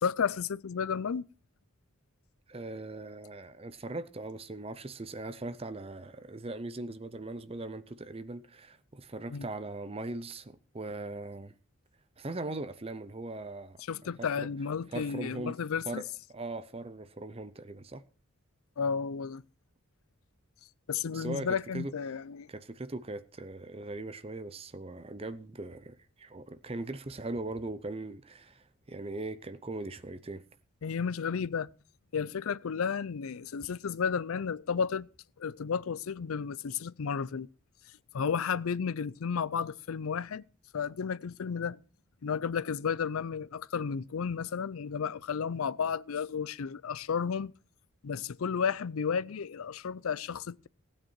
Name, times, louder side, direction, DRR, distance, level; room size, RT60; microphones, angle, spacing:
voice 1, 0.0-1.3 9.3-9.5 13.9-16.0 18.8-19.4 20.9-22.5 30.8-31.7 32.1-35.1 35.4-37.5 38.1-40.4 40.7-41.8 42.2-47.5 48.0-50.7, left 6 dB, 80° left, 0.5 m, -32 dB
voice 2, 2.5-11.5 12.2-13.8 14.2-14.5 14.9-15.6 15.9-18.0 21.1-21.9 22.5-30.4, right 2 dB, 25° right, 0.6 m, -40 dB
15.5 x 8.9 x 4.6 m
head